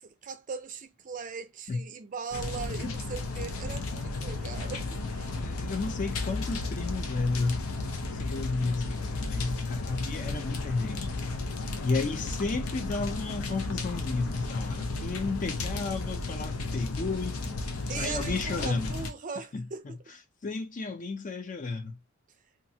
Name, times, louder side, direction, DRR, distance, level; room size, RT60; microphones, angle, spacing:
voice 1, 0.0-5.3 17.9-19.8, right 5 dB, 40° right, 0.4 m, -39 dB
sound 1, 2.3-19.1, left 3 dB, 85° left, 0.6 m, -34 dB
voice 2, 5.3-7.6 8.1-11.1 11.8-17.6 18.0-19.0 19.5-20.0 20.4-22.0, left 3 dB, 35° left, 0.5 m, -32 dB
2.9 x 2.4 x 2.7 m
head